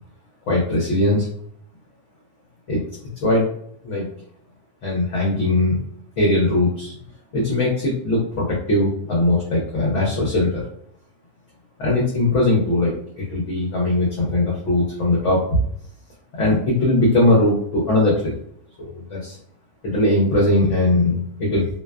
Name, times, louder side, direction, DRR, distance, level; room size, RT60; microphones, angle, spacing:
voice 1, 0.5-1.3 2.7-2.8 3.2-3.5 3.8-4.1 4.8-5.8 6.2-6.9 7.3-10.6 11.8-15.6 16.3-18.4 18.8-19.4 19.8-21.7, left 2 dB, 60° left, -4 dB, 0.9 m, -20 dB
2.6 x 2.2 x 2.2 m, 0.66 s
omnidirectional pair, 1.6 m